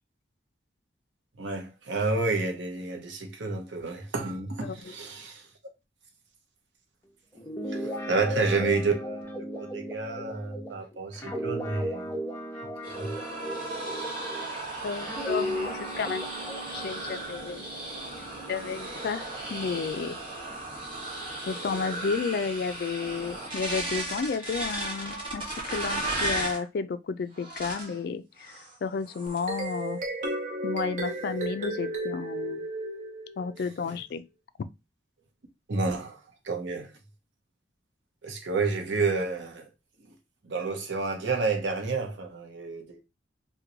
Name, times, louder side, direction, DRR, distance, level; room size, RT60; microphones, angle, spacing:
voice 1, 1.4-5.5 7.7-12.2 13.0-13.1 33.9-34.0 35.7-36.9 38.2-39.7 40.4-43.0, right 3 dB, 90° right, 0.8 m, -30 dB
voice 2, 4.6-4.9 14.8-16.2 16.7-17.6 18.5-20.2 21.5-28.5 28.8-30.0 30.6-32.6 33.4-34.2, left 5 dB, 55° left, 0.3 m, -32 dB
Guitar, 7.4-14.6 15.0-18.7, equal, 10° left, 0.8 m, -36 dB
sound 1, 12.8-26.6 27.4-28.0 28.4-28.7 29.1-29.8, right 1 dB, 30° right, 1.2 m, -35 dB
sound 2, 29.3-33.6, right 2 dB, 45° right, 0.7 m, -33 dB
2.9 x 2.2 x 3.8 m
head